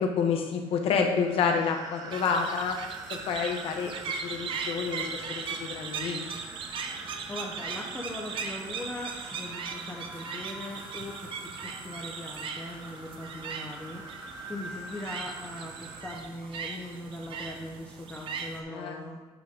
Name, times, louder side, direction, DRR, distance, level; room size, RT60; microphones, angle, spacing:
voice 1, 0.0-2.8 3.1-3.9 4.2-6.2 18.7-19.0, left 6 dB, 55° left, 3 dB, 1.1 m, -28 dB
sound 1, 0.7-16.0, right 2 dB, 30° right, 1.1 m, -45 dB
sound 2, 2.1-18.6, right 5 dB, 50° right, 0.8 m, -39 dB
voice 2, 6.9-11.4 11.6-19.2, left 1 dB, 10° left, -1 dB, 0.7 m, -40 dB
8.4 x 3.9 x 5.2 m, 1.2 s
cardioid pair, 140°, 11 cm